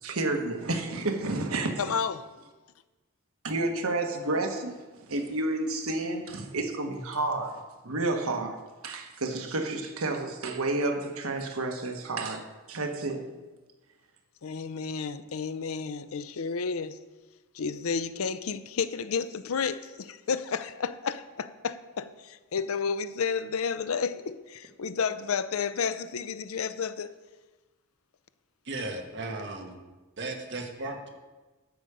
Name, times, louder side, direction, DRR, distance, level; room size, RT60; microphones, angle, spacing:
voice 1, 0.0-1.7 3.4-8.6 8.8-13.4, right 2 dB, 80° right, 1.3 m, -30 dB
voice 2, 1.8-2.3 14.4-17.0 17.5-27.1, left 6 dB, 80° left, 0.5 m, -31 dB
voice 3, 28.6-29.8 30.2-31.1, right 2 dB, 55° right, 1.5 m, -36 dB
11.5 x 6.7 x 4.9 m
head